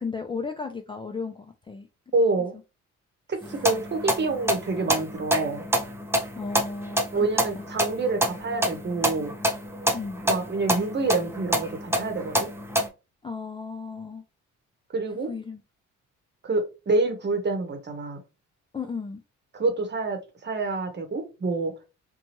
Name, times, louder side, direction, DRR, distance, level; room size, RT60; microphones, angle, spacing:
voice 1, 0.0-1.9 6.4-7.3 9.9-10.2 13.2-14.2 15.3-15.6 18.7-19.2, left 5 dB, 15° left, 6 dB, 0.3 m, -34 dB
voice 2, 2.1-2.6 3.3-5.7 7.1-9.3 10.2-12.5 14.9-15.3 16.4-18.2 19.5-21.7, right 3 dB, 35° right, 6 dB, 0.9 m, -27 dB
sound 1, 3.4-12.9, right 1 dB, 10° right, 0.7 m, -28 dB
2.9 x 2.2 x 2.8 m, 0.28 s
cardioid pair, 90°, 30 cm